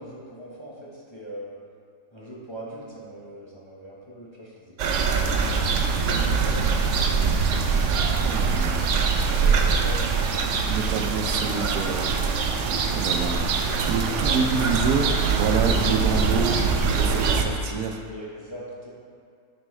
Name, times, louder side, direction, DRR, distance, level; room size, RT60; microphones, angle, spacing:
voice 1, 0.0-1.5 2.1-5.5 5.8-7.3 9.3-10.1 13.7-14.5 18.0-18.9, right 1 dB, 20° left, -6 dB, 0.9 m, -40 dB
sound 1, 4.8-17.4, right 5 dB, 65° right, 0.9 m, -23 dB
voice 2, 8.2-9.2 10.7-12.1 12.9-18.0, right 5 dB, 90° right, 4 dB, 1.2 m, -28 dB
9.5 x 5.2 x 3.2 m, 2.3 s
omnidirectional pair, 1.5 m